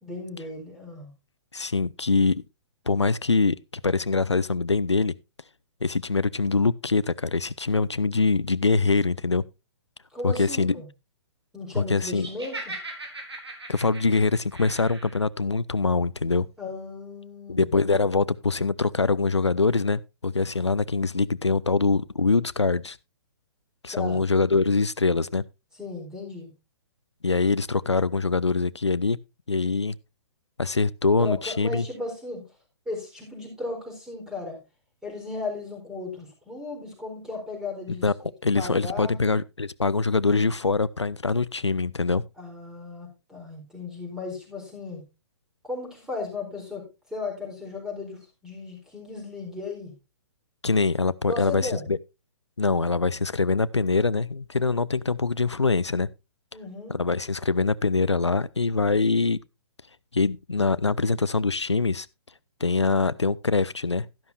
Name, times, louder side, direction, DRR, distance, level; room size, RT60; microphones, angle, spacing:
voice 1, 0.0-1.1 10.1-10.9 11.5-12.8 16.6-17.7 23.9-24.2 25.7-26.5 31.2-32.5 32.9-34.6 35.0-39.2 42.4-45.0 45.6-49.9 51.3-51.8 56.5-57.0, left 3 dB, 5° right, 4.2 m, -36 dB
voice 2, 1.5-2.4 2.9-3.6 3.8-5.1 5.8-9.4 10.2-10.8 11.8-12.3 13.7-16.5 17.5-23.0 23.8-25.4 27.2-29.2 29.5-30.0 30.6-31.9 38.0-38.1 38.4-42.2 50.6-52.0 52.6-56.1 56.9-59.4 60.1-62.1 62.6-64.1, left 4 dB, 85° left, 0.4 m, -23 dB
Laughter, 12.2-15.2, right 2 dB, 70° right, 4.1 m, -39 dB
12.0 x 11.5 x 2.6 m
figure-of-eight pair, 125°, 14 cm